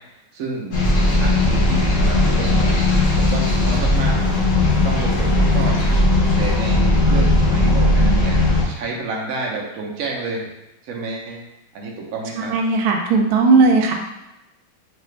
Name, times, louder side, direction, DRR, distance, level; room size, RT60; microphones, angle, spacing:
voice 1, 0.3-0.8 1.2-2.7 3.1-4.2 4.8-5.8 6.4-10.5 10.8-11.4 11.7-12.5, right 3 dB, 60° right, -2 dB, 1.0 m, -29 dB
sound 1, 0.7-8.6, left 2 dB, 50° left, 1.1 m, -17 dB
voice 2, 12.4-13.9, right 4 dB, 80° right, 2 dB, 1.3 m, -16 dB
4.7 x 2.5 x 3.2 m, 0.94 s
omnidirectional pair, 2.2 m